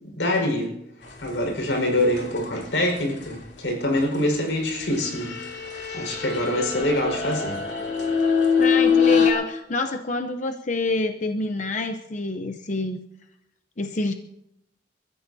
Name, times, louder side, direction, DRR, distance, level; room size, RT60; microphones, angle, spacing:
voice 1, 0.1-0.7 1.2-5.3 5.9-7.6, left 1 dB, 85° left, 3 dB, 4.9 m, -25 dB
sound 1, 2.2-2.9 4.9-9.3, left 6 dB, 70° left, 3.0 m, -23 dB
voice 2, 8.6-13.0 13.8-14.1, left 2 dB, 40° left, 6 dB, 0.7 m, -27 dB
28.5 x 14.5 x 2.8 m, 0.82 s
head